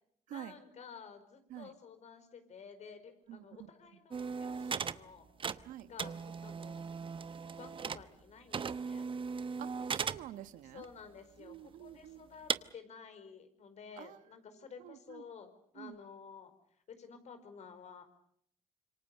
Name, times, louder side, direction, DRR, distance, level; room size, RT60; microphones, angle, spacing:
voice 1, 0.3-5.3 5.8-6.8 7.5-9.2 10.6-16.5 16.9-18.0, left 6 dB, 60° left, 4.9 m, -52 dB
sound 1, 4.1-8.2 8.5-10.3 10.8-10.9 11.5-11.6 12.5-12.6, right 6 dB, 40° right, 1.0 m, -38 dB
voice 2, 9.6-10.8 11.4-12.2 14.0-14.2 14.8-15.2 15.8-16.0, right 12 dB, 85° right, 1.2 m, -48 dB
27.0 x 24.0 x 6.7 m
supercardioid pair, 70°, 13 cm